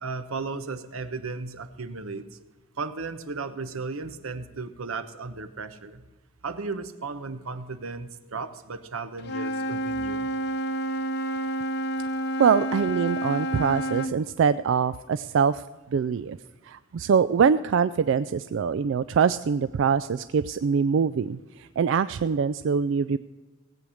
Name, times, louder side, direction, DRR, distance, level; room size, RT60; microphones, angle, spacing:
voice 1, 0.0-2.2 2.8-6.0 6.4-10.3, right 4 dB, 85° right, 10 dB, 1.0 m, -35 dB
Wind instrument woodwind instrument, 9.2-14.2, right 1 dB, 50° left, 0.7 m, -29 dB
voice 2, 12.4-15.6 15.9-16.4 16.6-23.2, right 6 dB, 60° right, 13 dB, 0.3 m, -24 dB
17.5 x 8.6 x 6.3 m, 1.3 s
head